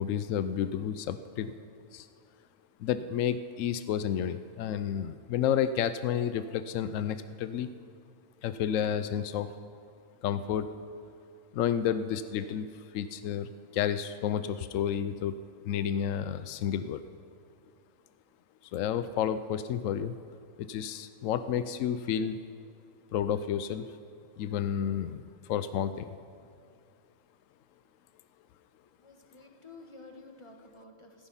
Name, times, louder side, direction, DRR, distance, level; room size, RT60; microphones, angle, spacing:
voice 1, 0.0-1.5 1.9-2.1 2.8-7.7 8.4-9.5 10.2-10.7 11.5-15.4 15.6-17.0 18.7-20.2 20.6-22.4 23.1-23.9 24.4-25.2 25.5-26.2, left 9 dB, 75° left, 12 dB, 1.0 m, -31 dB
voice 2, 29.0-31.3, left 3 dB, 25° left, 3 dB, 1.3 m, -51 dB
15.5 x 14.0 x 5.6 m, 2.2 s
omnidirectional pair, 1.4 m